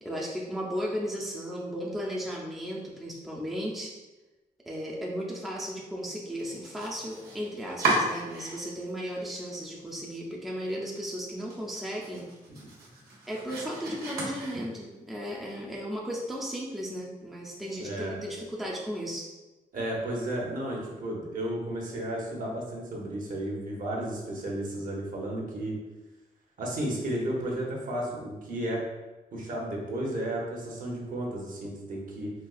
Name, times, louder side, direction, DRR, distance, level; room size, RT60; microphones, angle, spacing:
voice 1, 0.0-3.9 4.7-12.3 13.3-19.3, equal, ahead, -3 dB, 0.5 m, -35 dB
Domestic sounds home sounds, 6.3-8.9 9.2-10.0 10.3-10.4 10.8-10.9 11.3-15.0, right 2 dB, 85° right, 1.0 m, -34 dB
voice 2, 17.8-18.1 19.7-25.8 26.6-28.8 29.3-32.3, right 1 dB, 60° right, -2 dB, 0.9 m, -33 dB
4.2 x 2.3 x 2.4 m, 1.1 s
cardioid pair, 110°, 16 cm